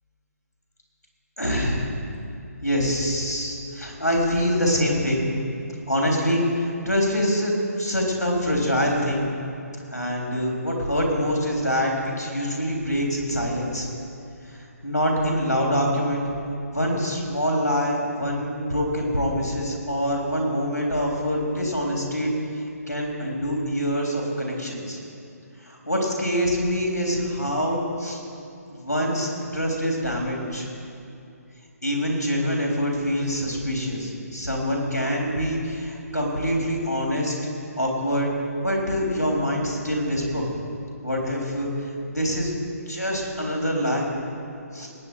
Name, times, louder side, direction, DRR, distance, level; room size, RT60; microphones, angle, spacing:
voice 1, 1.4-1.9 2.6-5.2 5.9-6.4 6.9-7.5 7.8-9.2 9.9-11.9 12.2-13.9 14.8-16.2 16.7-22.3 22.9-25.0 25.6-28.2 28.8-30.7 31.8-37.3 37.8-38.3 38.6-40.5 41.0-41.7 42.1-42.5 42.9-44.1 44.7-44.9, equal, 90° left, -1 dB, 3.7 m, -25 dB
19.0 x 9.1 x 4.7 m, 2.6 s
figure-of-eight pair, 140°, 9 cm